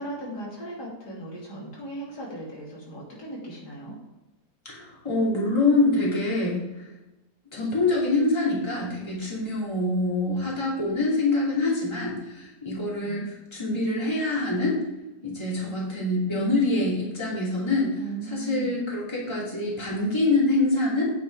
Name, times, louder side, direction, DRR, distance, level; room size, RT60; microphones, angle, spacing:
voice 1, 0.0-4.0 13.0-13.2 18.0-18.8, right 2 dB, 70° left, -4 dB, 3.1 m, -37 dB
voice 2, 4.6-6.6 7.5-14.8 15.2-18.0 18.3-21.1, left 2 dB, 15° left, -5 dB, 2.7 m, -25 dB
9.2 x 7.0 x 4.8 m, 1.0 s
omnidirectional pair, 1.8 m